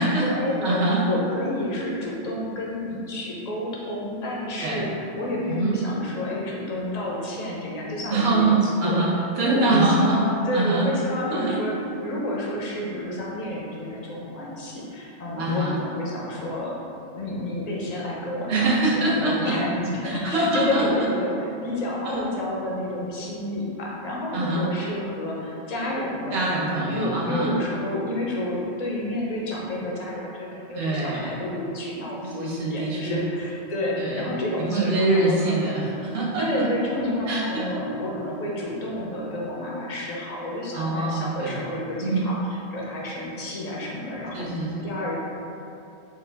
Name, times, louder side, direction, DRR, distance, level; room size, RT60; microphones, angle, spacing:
voice 1, 0.0-0.8 1.1-8.5 8.8-9.0 9.4-11.7 12.0-16.8 17.1-35.8 36.4-42.4 42.7-45.2, left 1 dB, 45° left, -4 dB, 0.6 m, -30 dB
voice 2, 0.6-1.1 4.6-4.9 5.5-5.8 8.1-10.2 10.5-10.9 11.3-11.5 15.4-15.8 18.5-19.6 20.0-20.9 22.0-22.2 24.3-24.7 26.3-27.6 30.7-31.5 32.2-33.2 34.0-34.3 34.6-36.7 37.3-37.7 40.7-41.6 42.0-42.3 44.3-44.8, right 2 dB, 70° right, -6 dB, 1.1 m, -24 dB
4.7 x 2.3 x 3.4 m, 2.7 s
omnidirectional pair, 1.1 m